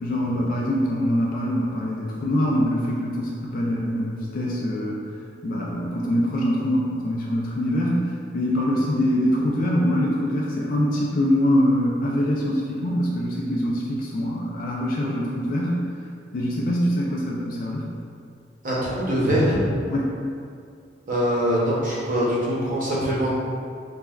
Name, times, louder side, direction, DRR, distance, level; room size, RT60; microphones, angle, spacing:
voice 1, 0.0-5.0 5.4-8.1 8.3-15.8 16.3-17.9 19.9-20.1, equal, 50° left, -3 dB, 0.3 m, -24 dB
voice 2, 18.6-19.6 21.1-23.3, equal, 50° right, -7 dB, 0.7 m, -23 dB
3.4 x 2.2 x 2.3 m, 2.3 s
head